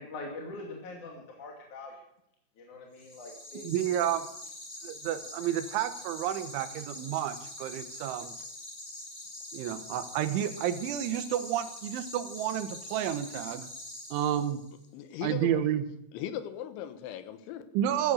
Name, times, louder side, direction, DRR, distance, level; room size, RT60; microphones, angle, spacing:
voice 1, 0.0-1.9 2.6-3.6, left 2 dB, 45° left, 0 dB, 3.4 m, -43 dB
sound 1, 2.9-14.8, left 1 dB, 30° left, 4.1 m, -44 dB
voice 2, 3.6-4.3 4.8-8.4 9.5-13.7 14.1-14.6 15.2-15.8 17.7-18.1, right 11 dB, 85° right, 10 dB, 3.6 m, -30 dB
voice 3, 14.9-15.6 16.1-17.7, left 10 dB, 80° left, 11 dB, 3.4 m, -38 dB
15.0 x 14.5 x 6.4 m, 0.77 s
omnidirectional pair, 5.4 m